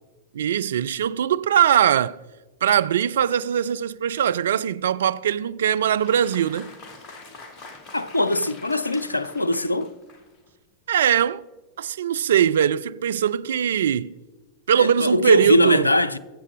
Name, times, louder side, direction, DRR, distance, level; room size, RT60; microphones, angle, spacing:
voice 1, 0.3-2.2 2.6-6.7 10.9-11.4 11.8-14.1 14.7-15.9, right 9 dB, 65° right, 0.3 m, -21 dB
Applause, 5.6-10.5, left 3 dB, 35° left, 1.4 m, -44 dB
voice 2, 7.9-9.9 14.7-16.2, left 1 dB, 80° left, 0.4 m, -21 dB
22.0 x 7.4 x 3.3 m
figure-of-eight pair, 90°, 0 cm